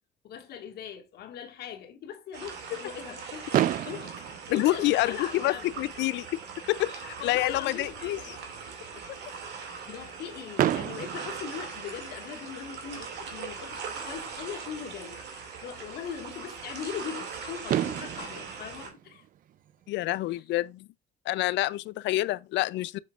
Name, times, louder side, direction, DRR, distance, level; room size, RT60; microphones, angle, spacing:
voice 1, 0.2-5.9 6.9-8.4 8.7-9.1 9.9-15.2 15.6-19.3 20.3-20.4 22.1-22.3, left 8 dB, 65° left, 1.9 m, -40 dB
sound 1, 2.3-18.9, right 5 dB, 70° right, 2.5 m, -41 dB
Fireworks, 3.5-5.5 6.4-6.5 6.6-6.9 7.2-7.3 10.6-12.4 14.1-14.2 17.2-17.3 17.7-20.0, right 12 dB, 50° right, 0.5 m, -31 dB
voice 2, 4.5-6.4 6.7-8.4 19.9-20.9 21.3-23.0, left 17 dB, 80° left, 0.5 m, -28 dB
7.5 x 7.2 x 2.5 m
cardioid pair, 175°, 18 cm